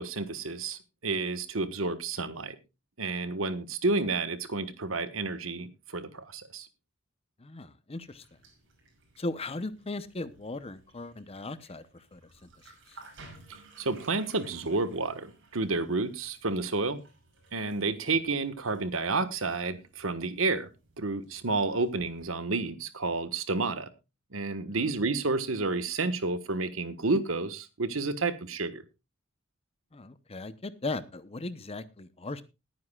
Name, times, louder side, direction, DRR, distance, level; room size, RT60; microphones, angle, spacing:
voice 1, 0.0-2.6 3.0-6.7 13.8-17.0 17.5-20.7 21.0-23.9 24.3-28.8, right 3 dB, 85° right, 1.4 m, -30 dB
voice 2, 7.4-8.2 9.2-11.8 12.1-12.2 29.9-32.4, left 2 dB, 30° left, 0.8 m, -37 dB
sound 1, 8.0-22.2, right 3 dB, 65° right, 6.0 m, -57 dB
21.0 x 9.5 x 2.4 m
head